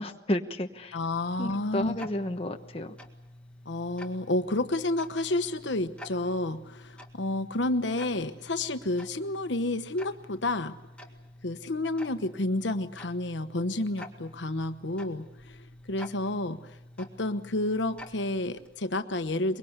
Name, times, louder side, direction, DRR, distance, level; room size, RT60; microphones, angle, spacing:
voice 1, 0.0-1.0 1.4-2.9, left 1 dB, 30° left, 5 dB, 1.2 m, -32 dB
Tick-tock, 0.7-19.0, left 1 dB, 5° left, 1.9 m, -49 dB
voice 2, 0.9-2.0 3.6-10.7 11.4-19.6, left 2 dB, 80° left, 9 dB, 1.1 m, -30 dB
23.5 x 23.0 x 8.2 m, 0.92 s
head